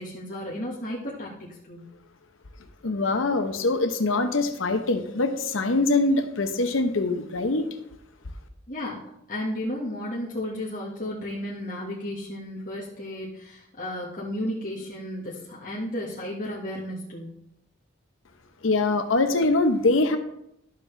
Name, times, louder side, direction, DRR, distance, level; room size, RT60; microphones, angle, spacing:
voice 1, 0.0-1.8 8.7-17.4, left 1 dB, 40° left, -7 dB, 1.6 m, -33 dB
voice 2, 2.8-7.7 18.6-20.2, left 2 dB, 80° left, 8 dB, 0.9 m, -23 dB
11.5 x 7.1 x 3.3 m, 0.80 s
head